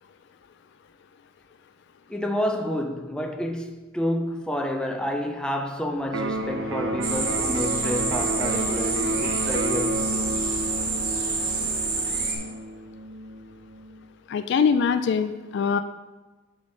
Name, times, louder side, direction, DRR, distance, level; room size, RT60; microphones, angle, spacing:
voice 1, 2.1-10.5, equal, 5° left, 0.5 m, -29 dB
sound 1, 6.0-12.9, left 2 dB, 90° left, 1.1 m, -40 dB
Electric guitar, 6.1-14.1, right 1 dB, 70° right, 0.5 m, -31 dB
sound 2, 7.0-12.3, right 4 dB, 50° right, 1.2 m, -28 dB
voice 2, 14.3-15.8, left 6 dB, 60° left, 0.3 m, -23 dB
9.6 x 3.8 x 3.9 m
head